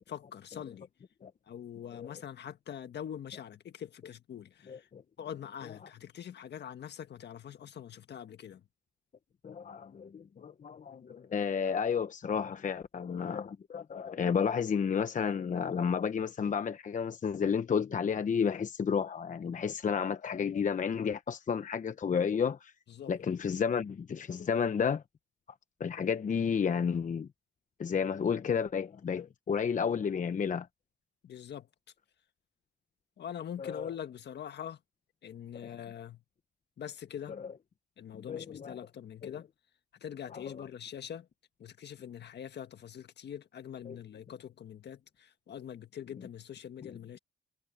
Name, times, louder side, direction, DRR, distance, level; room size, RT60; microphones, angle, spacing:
voice 1, 0.1-0.9 1.5-4.9 5.2-8.6 22.9-23.1 31.2-31.7 33.2-34.8 35.2-36.2 36.8-37.4 38.0-39.5 40.0-41.3 41.6-47.2, left 9 dB, 60° left, 1.7 m, -43 dB
voice 2, 4.7-5.0 9.4-22.7 23.1-25.0 25.8-27.3 27.8-30.7 33.6-33.9 35.6-35.7 37.3-37.5 38.1-38.8 39.2-39.3 40.3-40.7 43.9-44.0 46.8-46.9, left 6 dB, 40° left, 1.0 m, -32 dB
cardioid pair, 90°, 20 cm